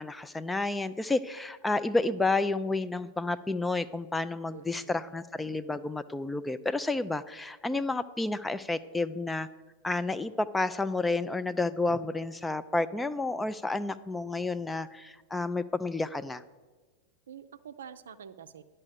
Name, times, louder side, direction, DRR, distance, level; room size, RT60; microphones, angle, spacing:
voice 1, 0.0-9.5 9.8-16.4, left 2 dB, 10° left, 14 dB, 0.3 m, -30 dB
voice 2, 4.5-5.1 17.3-18.6, right 8 dB, 65° right, 11 dB, 0.5 m, -47 dB
10.5 x 5.5 x 6.8 m, 1.3 s
figure-of-eight pair, 90°, 0 cm